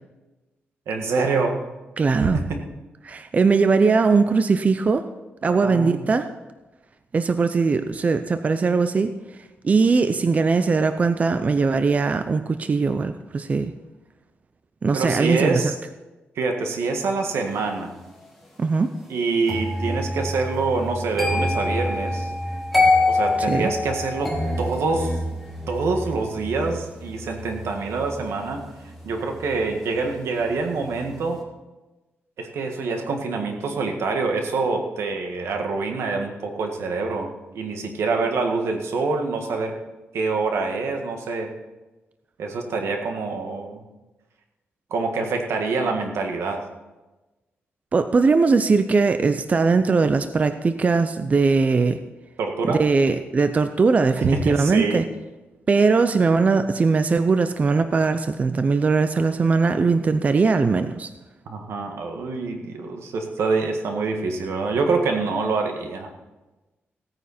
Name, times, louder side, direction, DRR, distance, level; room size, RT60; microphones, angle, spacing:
voice 1, 0.9-1.6 2.2-2.6 5.4-6.0 14.9-15.8 16.4-17.9 19.1-22.3 23.1-25.2 25.7-28.6 29.0-31.4 32.4-39.8 40.1-41.5 42.4-43.8 44.9-46.6 52.4-52.8 54.2-55.0 61.5-66.1, right 4 dB, 85° right, 4 dB, 1.8 m, -26 dB
voice 2, 2.0-2.4 3.0-5.1 5.4-6.3 7.1-9.1 9.6-13.7 14.8-15.7 18.6-18.9 23.5-23.7 47.9-52.0 52.6-55.0 55.7-61.1, right 4 dB, 35° right, 9 dB, 0.5 m, -20 dB
sound 1, 19.5-30.4 30.7-31.1, left 2 dB, ahead, 2.3 m, -26 dB
16.5 x 9.3 x 4.3 m, 1.1 s
wide cardioid pair, 125°, 4 cm